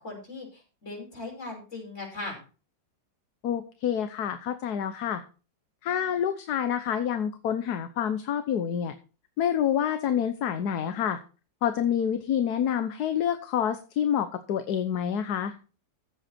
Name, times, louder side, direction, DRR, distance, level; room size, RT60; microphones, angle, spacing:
voice 1, 0.0-2.4, left 2 dB, 35° left, -1 dB, 6.5 m, -39 dB
voice 2, 3.4-5.2 5.8-8.9 9.4-11.2 11.6-15.5, left 9 dB, 60° left, 10 dB, 1.3 m, -27 dB
15.5 x 8.0 x 4.3 m, 0.35 s
omnidirectional pair, 2.0 m